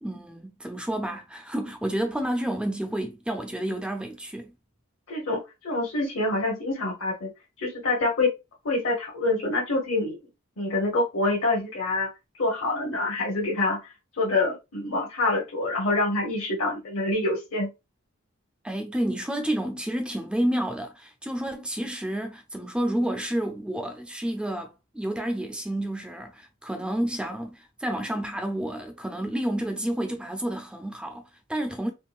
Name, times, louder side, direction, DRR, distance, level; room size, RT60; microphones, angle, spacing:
voice 1, 0.0-4.5 18.6-31.9, right 1 dB, 5° right, 0.4 m, -30 dB
voice 2, 5.1-7.3 7.6-8.3 8.6-10.2 10.6-12.1 12.4-13.8 14.2-17.7, left 2 dB, 55° left, 0.8 m, -26 dB
3.5 x 2.3 x 2.4 m
head